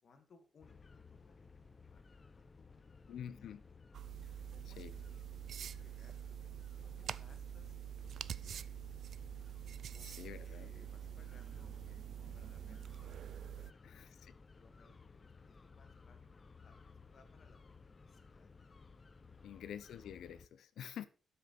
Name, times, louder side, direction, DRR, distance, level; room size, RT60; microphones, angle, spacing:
voice 1, 0.0-3.8 4.5-6.3 6.8-8.9 9.6-12.8 13.3-14.1 14.5-16.2 16.6-17.6 18.1-18.5 19.2-19.6 20.7-21.1, left 4 dB, 45° left, 1.8 m, -67 dB
sound 1, 0.6-20.5, left 4 dB, 25° left, 0.6 m, -58 dB
voice 2, 3.1-3.6 4.7-4.9 10.0-10.7 13.8-14.1 19.4-21.1, left 9 dB, 80° left, 0.7 m, -48 dB
sound 2, 3.9-13.7, right 10 dB, 60° right, 0.3 m, -46 dB
12.5 x 5.7 x 4.1 m
wide cardioid pair, 145°, 0 cm